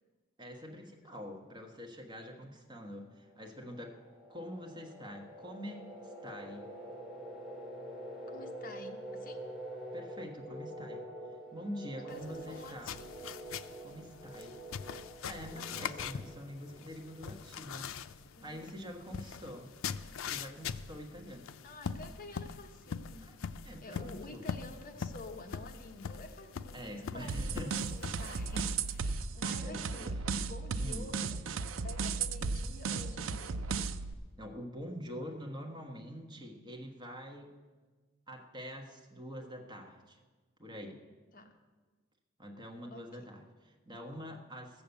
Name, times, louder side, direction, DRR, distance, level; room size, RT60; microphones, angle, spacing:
voice 1, 0.4-4.0 4.3-6.7 9.9-11.0 11.5-12.9 13.8-14.6 15.2-17.9 18.4-19.7 20.2-21.5 23.2-23.4 23.6-24.5 26.7-27.8 29.4-30.2 30.8-31.1 34.4-37.6 38.3-40.2 40.6-41.0 42.4-44.8, equal, 20° right, 2 dB, 1.3 m, -45 dB
sound 1, 3.2-17.8, right 1 dB, ahead, 2.2 m, -47 dB
voice 2, 8.3-9.4 12.0-13.1 15.5-15.8 18.4-18.6 19.1-19.4 21.6-23.2 23.8-31.4 31.8-33.6 41.3-41.6 42.9-43.3, left 2 dB, 45° left, 4 dB, 1.1 m, -50 dB
sound 2, 12.1-29.0, left 6 dB, 75° left, 0.5 m, -43 dB
sound 3, 27.3-34.1, right 4 dB, 70° right, 0.5 m, -35 dB
14.0 x 7.0 x 8.0 m, 1.4 s
head